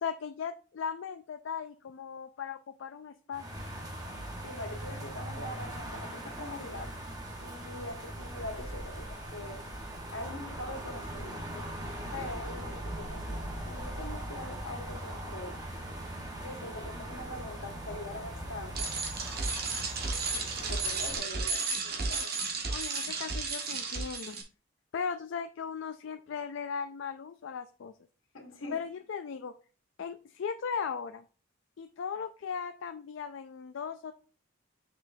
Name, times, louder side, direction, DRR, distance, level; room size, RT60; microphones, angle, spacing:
voice 1, 0.0-3.4 22.7-24.4 24.9-27.9 28.7-29.5 30.0-31.2 31.8-34.1, left 6 dB, 65° left, 0.4 m, -37 dB
sound 1, 3.3-21.2, right 1 dB, 20° right, 1.2 m, -40 dB
voice 2, 4.4-6.9 7.4-9.6 10.1-11.6 12.1-15.6 16.4-18.9 20.1-22.3 28.3-28.8, left 2 dB, 85° left, 1.6 m, -43 dB
Bicycle, 18.7-24.4, right 4 dB, 50° right, 1.4 m, -33 dB
6.3 x 6.1 x 2.7 m
head